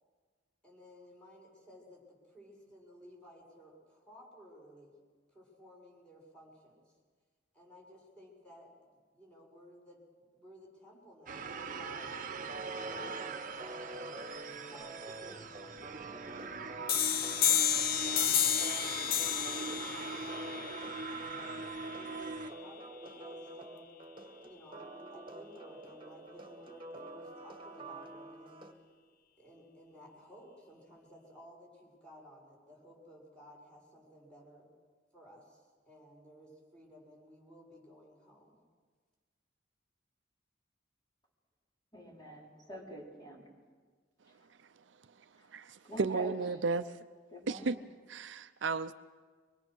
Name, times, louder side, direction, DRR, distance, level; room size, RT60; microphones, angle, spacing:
voice 1, 0.6-4.9 5.3-6.9 7.5-8.7 9.1-10.0 10.3-12.2 12.8-13.3 13.9-14.2 14.7-18.5 19.2-20.4 21.2-24.0 24.4-28.7 29.4-34.7 35.1-38.6, equal, 5° left, -3 dB, 6.8 m, -56 dB
sound 1, 11.3-22.5, right 4 dB, 45° right, 1.0 m, -42 dB
sound 2, 12.5-28.7, right 2 dB, 30° right, 2.2 m, -48 dB
sound 3, 16.9-22.3, left 9 dB, 50° left, 0.8 m, -31 dB
voice 2, 41.9-43.5 44.3-44.5 45.8-46.3 47.3-47.8, equal, 25° left, -3 dB, 4.7 m, -46 dB
voice 3, 46.0-46.9 47.5-47.8 48.1-48.9, right 4 dB, 70° right, 12 dB, 0.6 m, -32 dB
24.5 x 21.5 x 6.4 m, 1.5 s
head